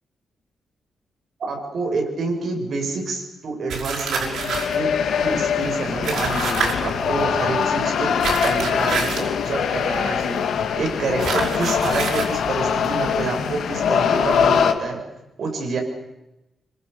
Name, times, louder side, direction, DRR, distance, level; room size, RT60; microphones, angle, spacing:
voice 1, 1.4-4.9 5.2-8.2 8.4-10.5 10.8-15.0 15.4-15.8, right 3 dB, 55° right, 2 dB, 6.9 m, -27 dB
sound 1, 3.7-4.8 6.0-6.7 8.2-9.3 11.2-12.3, right 5 dB, 90° right, 6.4 m, -26 dB
sound 2, 4.1-14.7, left 7 dB, 85° left, 2.2 m, -23 dB
26.5 x 25.5 x 7.0 m, 0.93 s
wide cardioid pair, 135°, 0 cm